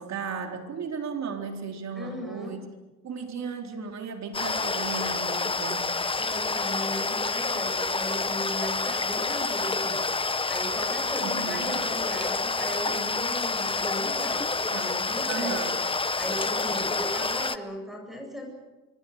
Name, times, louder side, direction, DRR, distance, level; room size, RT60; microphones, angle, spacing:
voice 1, 0.0-2.7 3.0-6.0 11.2-11.8 14.6-15.0 15.3-15.8 16.7-16.8, right 5 dB, 60° right, 4 dB, 4.0 m, -35 dB
voice 2, 2.0-2.5 6.1-10.0 10.5-15.7 16.2-18.5, equal, ahead, 0 dB, 8.0 m, -37 dB
sound 1, 4.3-17.6, left 3 dB, 15° left, 0.9 m, -28 dB
25.0 x 24.5 x 6.6 m, 1.1 s
cardioid pair, 90°, 30 cm